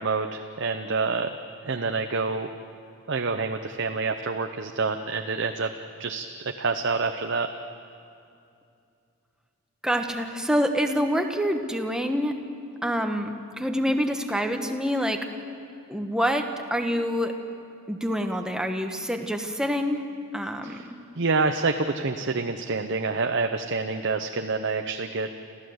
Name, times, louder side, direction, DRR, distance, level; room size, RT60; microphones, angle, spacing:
voice 1, 0.0-1.4 1.6-2.5 3.1-5.7 6.0-7.5 20.6-20.9 21.2-25.3, right 4 dB, 55° right, 6 dB, 0.7 m, -27 dB
voice 2, 9.8-12.4 12.8-15.3 15.9-17.3 17.9-20.0 20.3-21.0, equal, 5° right, 4 dB, 1.1 m, -26 dB
28.0 x 15.0 x 7.9 m, 2.5 s
head